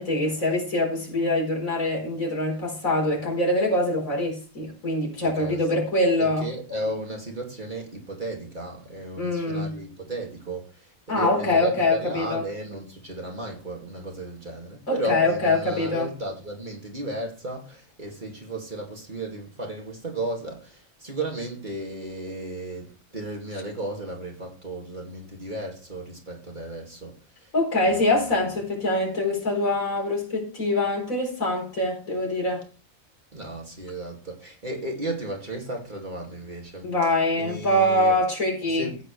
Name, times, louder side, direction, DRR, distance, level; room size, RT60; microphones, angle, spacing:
voice 1, 0.0-6.5 9.2-9.7 11.1-12.4 14.9-16.1 27.5-32.6 36.8-38.9, left 1 dB, 75° left, 4.8 m, -24 dB
voice 2, 5.2-5.6 6.2-27.5 27.8-28.1 33.3-38.2 38.7-39.0, right 1 dB, 35° right, 2.5 m, -34 dB
14.5 x 9.2 x 3.3 m
omnidirectional pair, 1.4 m